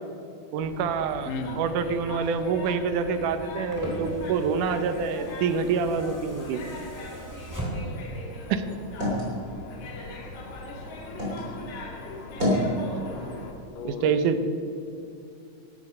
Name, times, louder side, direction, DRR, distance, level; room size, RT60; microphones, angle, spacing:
voice 1, 0.5-1.3 1.6-6.6 8.5-8.6 13.8-14.4, right 5 dB, 80° right, 10 dB, 2.3 m, -26 dB
sound 1, 0.6-13.5, left 2 dB, 65° left, 2.9 m, -40 dB
voice 2, 1.2-1.6 13.8-14.5, left 4 dB, 85° left, 8 dB, 2.6 m, -35 dB
sound 2, 3.1-8.1 9.3-9.4, right 1 dB, 5° right, 2.4 m, -38 dB
sound 3, 8.2-11.4 11.9-12.7, left 1 dB, 25° right, 3.7 m, -31 dB
15.0 x 12.5 x 5.4 m, 2.6 s
omnidirectional pair, 3.7 m